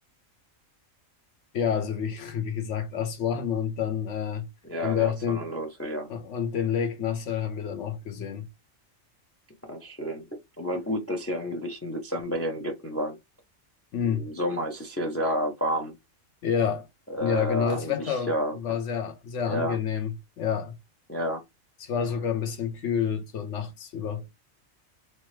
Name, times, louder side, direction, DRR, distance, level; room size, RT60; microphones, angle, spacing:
voice 1, 1.5-4.5 4.8-5.5 6.1-8.5 13.9-14.3 16.4-16.9 17.2-20.8 21.8-24.2, left 8 dB, 65° left, 1.1 m, -29 dB
voice 2, 4.6-6.1 9.7-10.2 10.6-13.2 14.0-16.0 17.1-18.6 19.5-19.8 21.1-21.4, equal, 15° left, 0.5 m, -30 dB
3.3 x 3.1 x 3.2 m
omnidirectional pair, 1.4 m